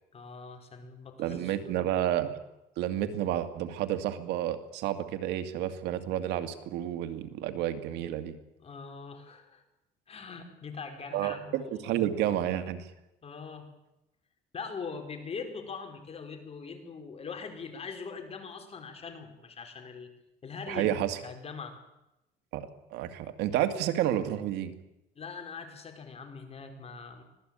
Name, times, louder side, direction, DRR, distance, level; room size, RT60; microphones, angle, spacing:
voice 1, 0.1-1.9 8.6-9.6 10.1-12.0 13.2-13.7 14.5-20.1 20.4-21.8 25.1-27.2, left 5 dB, 35° left, 5 dB, 5.0 m, -42 dB
voice 2, 1.2-2.4 2.8-8.3 11.1-12.9 20.7-21.2 22.5-24.7, right 11 dB, 90° right, 9 dB, 2.2 m, -30 dB
25.0 x 17.5 x 9.0 m, 0.91 s
cardioid pair, 110°, 17 cm